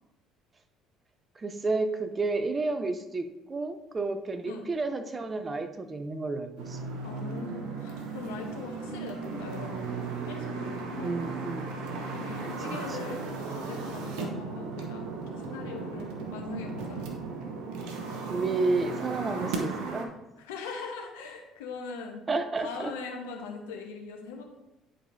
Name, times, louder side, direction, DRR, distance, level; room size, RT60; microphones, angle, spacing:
voice 1, 1.4-6.8 11.0-11.7 18.3-20.1 22.3-22.9, right 3 dB, 30° right, 9 dB, 0.7 m, -31 dB
sound 1, 6.6-20.0, right 4 dB, 65° right, 1.0 m, -36 dB
voice 2, 7.0-11.2 12.1-17.0 20.4-22.2 22.6-24.4, left 4 dB, 75° left, 2 dB, 1.1 m, -41 dB
9.9 x 4.9 x 2.7 m, 0.98 s
hypercardioid pair, 60°, 0 cm